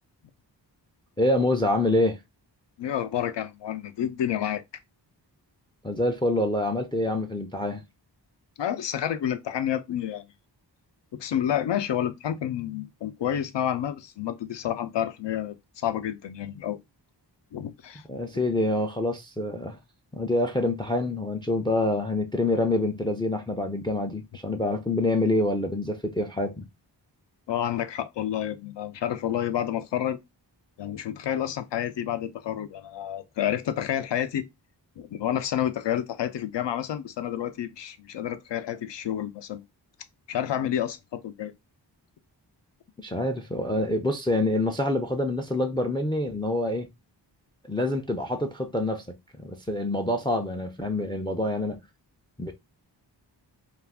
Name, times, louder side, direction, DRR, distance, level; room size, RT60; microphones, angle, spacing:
voice 1, 1.2-2.2 5.8-7.8 18.1-19.8 20.1-26.6 43.0-46.9 47.7-49.2 49.4-51.8 52.4-52.5, left 1 dB, 10° left, 0.3 m, -26 dB
voice 2, 2.8-4.6 8.6-10.3 11.1-16.8 17.5-18.0 27.5-30.2 30.8-34.5 35.0-39.6 40.3-41.5, left 10 dB, 75° left, 0.5 m, -29 dB
2.4 x 2.3 x 3.4 m
wide cardioid pair, 100°, 43 cm